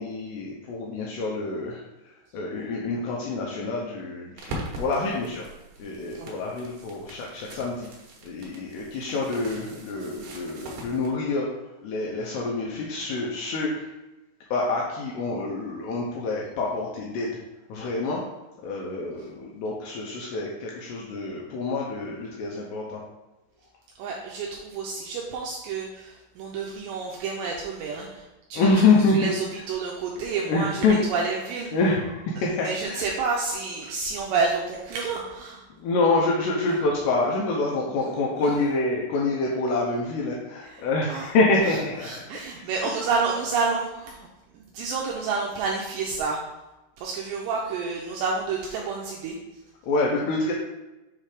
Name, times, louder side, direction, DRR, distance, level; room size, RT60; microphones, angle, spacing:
voice 1, 0.0-1.8 2.3-5.4 5.8-7.9 8.2-11.5 11.8-13.9 14.5-17.4 17.7-18.2 18.6-23.0 28.6-29.3 30.5-31.0 31.7-33.0 35.8-42.4 49.8-50.5, left 3 dB, 80° left, -2 dB, 2.5 m, -26 dB
sound 1, 4.4-11.1, right 1 dB, 65° right, 2.5 m, -41 dB
voice 2, 24.0-31.8 32.6-35.7 36.8-36.9 40.6-41.3 41.6-46.7 47.0-49.4, right 4 dB, 85° right, -2 dB, 2.5 m, -30 dB
7.5 x 3.2 x 4.9 m, 1.0 s
omnidirectional pair, 5.6 m